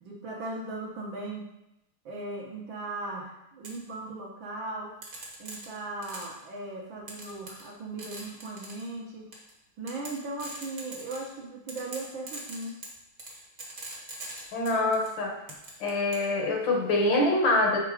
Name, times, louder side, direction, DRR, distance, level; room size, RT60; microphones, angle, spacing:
voice 1, 0.0-1.5 2.1-4.9 5.4-9.3 9.8-12.8, right 2 dB, 65° right, -3 dB, 1.9 m, -38 dB
sound 1, 3.6-3.8 5.0-6.4 7.1-7.7 8.0-8.9 9.3-9.5 9.9-11.4 11.7-15.1 15.5-16.3, right 2 dB, 40° right, 1.5 m, -42 dB
voice 2, 14.5-15.3 15.8-17.8, left 2 dB, 65° left, 0 dB, 1.7 m, -25 dB
6.0 x 3.6 x 4.9 m, 0.90 s
omnidirectional pair, 2.4 m